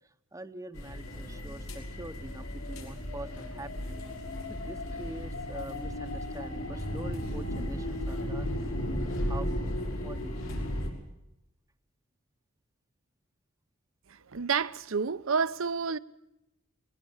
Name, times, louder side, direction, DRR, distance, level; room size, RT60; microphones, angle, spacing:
voice 1, 0.3-4.0 4.5-10.6, right 1 dB, 15° right, 0.8 m, -45 dB
sound 1, 0.7-10.9, left 1 dB, 80° left, 5.5 m, -35 dB
voice 2, 14.3-16.0, right 5 dB, 70° right, 0.8 m, -29 dB
21.0 x 20.5 x 7.2 m
head